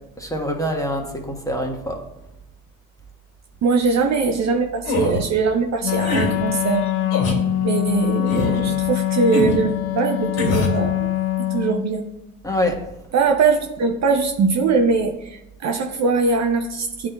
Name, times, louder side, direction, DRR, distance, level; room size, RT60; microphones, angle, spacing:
voice 1, 0.2-2.0 12.4-12.8, equal, 10° left, 2 dB, 1.3 m, -25 dB
voice 2, 3.6-6.9 7.6-11.1 11.4-12.1 13.1-17.1, right 4 dB, 40° right, 3 dB, 0.8 m, -21 dB
sound 1, 4.8-5.2 6.0-6.3 7.1-7.4 8.3-8.6 9.3-9.6 10.4-10.8, left 2 dB, 60° left, 2.4 m, -23 dB
Wind instrument woodwind instrument, 5.8-11.9, left 13 dB, 80° left, 0.6 m, -23 dB
11.0 x 3.9 x 2.3 m, 0.87 s
hypercardioid pair, 65°, 42 cm